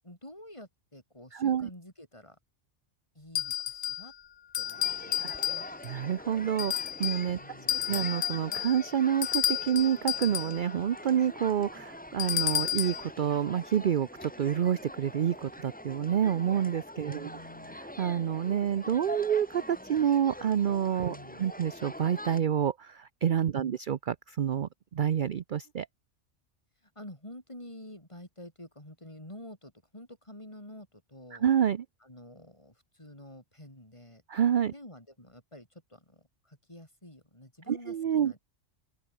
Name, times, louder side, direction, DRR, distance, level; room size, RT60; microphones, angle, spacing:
voice 1, 0.0-2.4 3.1-4.1 4.6-5.7 7.3-8.0 17.0-17.8 21.1-21.5 23.5-23.8 26.9-31.5 32.0-34.2 34.7-38.4, left 1 dB, 25° left, 5.1 m, -49 dB
voice 2, 1.3-1.7 5.2-5.3 5.8-7.4 7.7-17.3 18.0-25.9 31.4-31.8 34.3-34.7 37.7-38.3, right 9 dB, 50° right, 0.7 m, -28 dB
sound 1, 3.3-4.1 4.5-6.0 6.6-7.3 7.7-10.6 12.2-13.0, left 9 dB, 65° left, 0.4 m, -31 dB
sound 2, 4.6-22.4, left 1 dB, 5° left, 1.7 m, -44 dB
open air
omnidirectional pair, 1.2 m